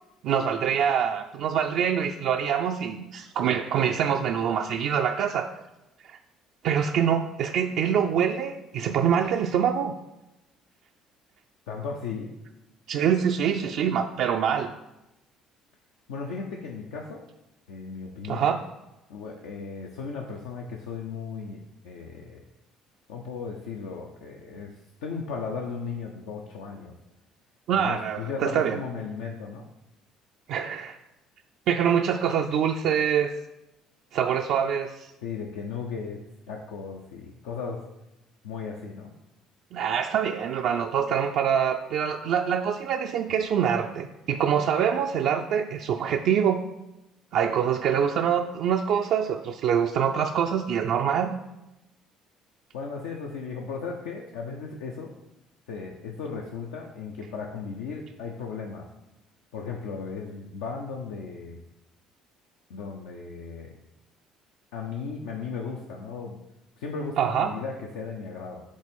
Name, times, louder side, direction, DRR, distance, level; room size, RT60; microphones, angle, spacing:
voice 1, 0.2-5.5 6.1-6.2 6.6-9.9 12.9-14.7 18.2-18.6 27.7-28.8 30.5-31.0 31.7-33.3 34.1-35.1 39.7-46.6 47.3-51.4 67.2-67.6, right 8 dB, 70° right, 3 dB, 0.3 m, -25 dB
voice 2, 11.7-12.3 16.1-17.2 17.7-18.5 19.1-21.6 21.8-22.4 23.1-26.9 27.7-29.7 35.2-37.8 38.4-39.1 52.7-55.1 55.7-58.9 59.5-61.6 62.7-63.7 64.7-66.4 66.8-68.6, left 5 dB, 85° left, 0 dB, 0.5 m, -36 dB
5.3 x 3.6 x 5.2 m, 0.95 s
supercardioid pair, 75°, 0 cm